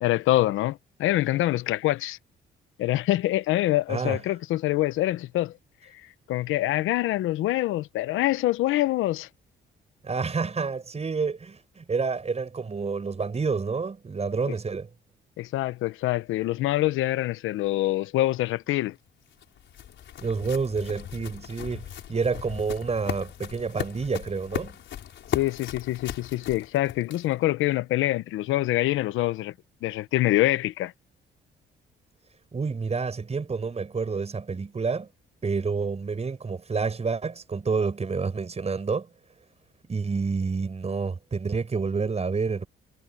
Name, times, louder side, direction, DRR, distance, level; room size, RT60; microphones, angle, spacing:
voice 1, 0.0-2.2 2.8-5.5 6.3-9.3 15.4-19.0 25.3-29.5 29.8-30.9, left 16 dB, 90° left, 0.8 m, -25 dB
voice 2, 3.9-4.2 10.0-14.9 20.2-24.8 32.5-35.1 35.4-39.1 39.9-42.7, right 4 dB, 30° right, 5.7 m, -29 dB
sound 1, 18.9-27.5, left 10 dB, 70° left, 5.1 m, -37 dB
cardioid pair, 90°, 20 cm